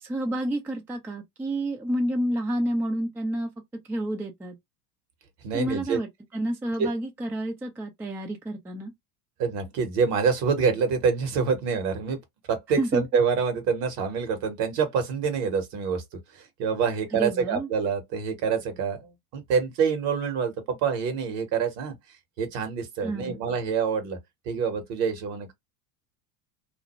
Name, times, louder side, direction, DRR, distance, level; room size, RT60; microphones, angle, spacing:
voice 1, 0.0-3.5 3.9-4.6 5.5-8.9 12.8-13.0 17.1-17.7 23.0-23.4, right 1 dB, 5° right, 0.3 m, -29 dB
voice 2, 5.4-6.0 6.8-6.9 9.4-12.2 12.5-16.0 16.3-21.9 22.4-24.2 24.5-25.5, right 6 dB, 60° right, 1.2 m, -26 dB
2.6 x 2.0 x 3.0 m
hypercardioid pair, 80°, 46 cm